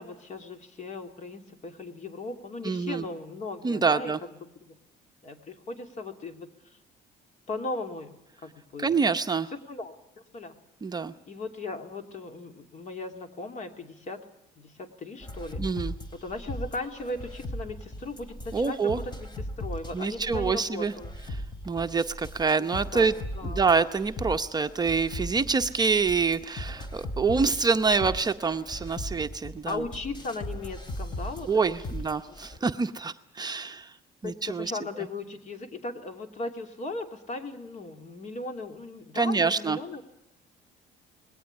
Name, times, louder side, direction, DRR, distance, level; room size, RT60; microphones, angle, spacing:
voice 1, 0.0-4.8 5.2-6.8 7.5-8.1 8.4-9.0 9.5-10.6 11.3-14.2 14.6-15.6 16.1-21.1 22.6-22.7 22.9-23.6 29.6-31.8 32.3-32.7 34.2-40.0, left 2 dB, 45° left, 6 dB, 2.9 m, -37 dB
voice 2, 2.6-3.0 3.6-4.2 8.8-9.5 10.8-11.1 15.6-15.9 18.5-19.0 19.9-20.9 21.7-23.1 23.4-29.8 31.5-33.9 34.2-34.7 39.1-39.8, right 5 dB, 25° right, 7 dB, 0.8 m, -26 dB
sound 1, 15.2-32.6, left 1 dB, 25° left, 2.8 m, -38 dB
20.5 x 17.5 x 9.8 m, 0.84 s
cardioid pair, 110°, 17 cm